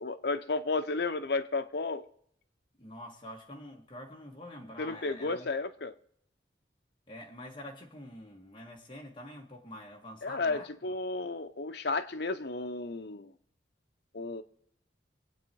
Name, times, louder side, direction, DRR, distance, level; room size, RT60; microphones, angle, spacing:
voice 1, 0.0-2.1 4.8-5.9 10.2-13.3 14.1-14.4, left 3 dB, 65° left, 0.8 m, -33 dB
voice 2, 2.8-5.5 7.1-10.7, left 1 dB, 25° left, 2.0 m, -46 dB
24.5 x 8.6 x 4.7 m
head